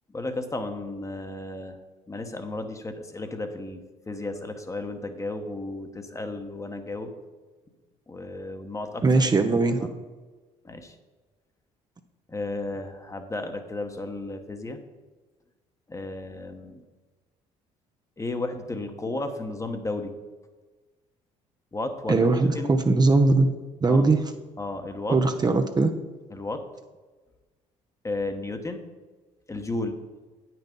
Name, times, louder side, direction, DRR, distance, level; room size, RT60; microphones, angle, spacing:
voice 1, 0.1-1.8 2.1-3.8 4.1-7.1 8.1-9.3 9.8-9.9 10.6-10.9 12.3-14.8 15.9-16.8 18.2-20.1 21.7-22.3 22.5-22.8 23.9-24.1 24.6-25.2 26.3-26.6 28.0-28.9 29.5-30.0, left 2 dB, 20° left, 7 dB, 1.2 m, -33 dB
voice 2, 9.0-9.8 22.1-24.2 25.1-25.9, right 3 dB, 25° right, 6 dB, 0.7 m, -20 dB
8.7 x 6.0 x 5.3 m, 1.3 s
hypercardioid pair, 60°, 15 cm